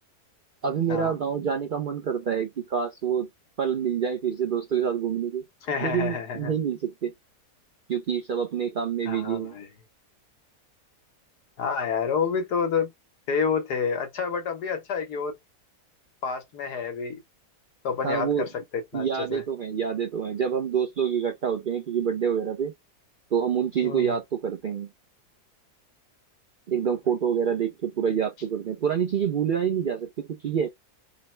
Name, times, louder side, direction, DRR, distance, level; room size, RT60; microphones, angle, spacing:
voice 1, 0.6-3.3 3.6-5.4 5.8-7.1 7.9-9.5 18.0-18.4 18.9-22.7 23.3-24.9 26.7-30.7, right 7 dB, 80° right, 0.4 m, -27 dB
voice 2, 5.6-6.5 9.1-9.7 11.6-12.9 13.3-15.4 16.2-17.2 17.8-19.4 23.8-24.1, left 6 dB, 80° left, 1.5 m, -29 dB
3.8 x 2.1 x 4.3 m
omnidirectional pair, 1.7 m